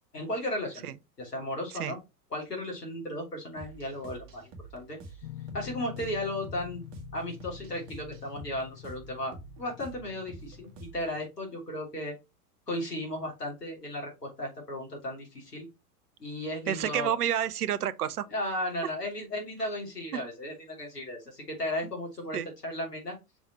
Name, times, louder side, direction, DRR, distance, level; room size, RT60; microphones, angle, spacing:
voice 1, 0.1-2.0 2.3-5.0 5.5-6.8 7.1-9.3 9.6-12.1 12.7-15.7 16.2-17.1 18.3-23.1, left 1 dB, 80° left, 3.1 m, -35 dB
sound 1, 3.6-11.2, right 3 dB, 35° right, 1.2 m, -48 dB
sound 2, 5.2-10.8, left 16 dB, 55° left, 0.7 m, -46 dB
voice 2, 16.7-18.3 20.1-20.2 22.3-22.5, right 10 dB, 70° right, 0.7 m, -29 dB
5.9 x 3.9 x 4.1 m
figure-of-eight pair, 90°, 47 cm